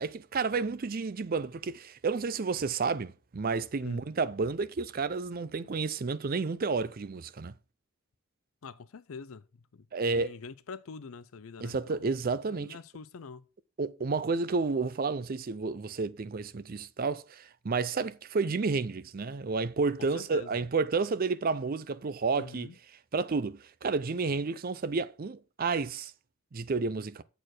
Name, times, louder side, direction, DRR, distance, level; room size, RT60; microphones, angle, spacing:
voice 1, 0.0-7.5 9.9-10.3 11.6-12.8 13.8-22.7 23.1-26.1 26.5-27.2, right 4 dB, 45° right, 0.5 m, -31 dB
voice 2, 8.6-12.2 12.5-13.4 20.0-20.6 22.4-22.8 24.3-24.4, left 5 dB, 75° left, 0.5 m, -46 dB
7.7 x 4.4 x 6.5 m
head